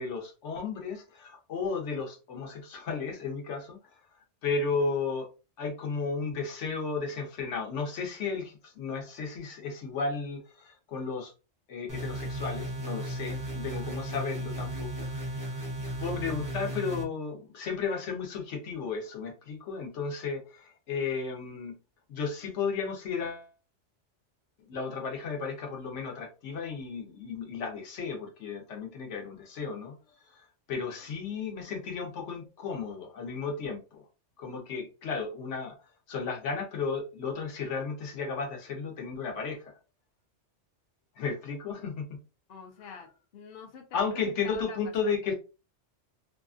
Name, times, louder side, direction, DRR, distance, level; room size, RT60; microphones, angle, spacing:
voice 1, 0.0-3.8 4.4-5.3 5.6-11.3 11.7-15.4 16.0-21.7 22.1-23.5 24.6-30.0 30.3-34.1 34.4-35.8 36.1-39.7 41.2-42.2 43.9-45.3, left 5 dB, 75° left, 2 dB, 1.1 m, -34 dB
sound 1, 11.9-17.0, right 1 dB, 25° right, 0.5 m, -35 dB
voice 2, 42.5-43.1 43.3-45.2, left 6 dB, 60° left, 2 dB, 0.7 m, -45 dB
2.7 x 2.4 x 2.4 m, 0.31 s
omnidirectional pair, 1.2 m